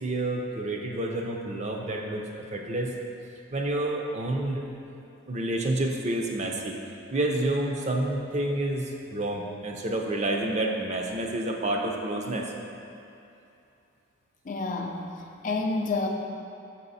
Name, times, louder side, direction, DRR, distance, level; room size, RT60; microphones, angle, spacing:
voice 1, 0.0-2.9 3.5-4.7 5.3-6.8 7.1-12.5, right 1 dB, 35° right, 1 dB, 0.5 m, -29 dB
voice 2, 14.5-15.0 15.4-16.1, left 3 dB, 40° left, 2 dB, 0.5 m, -28 dB
6.7 x 5.5 x 4.1 m, 2.7 s
head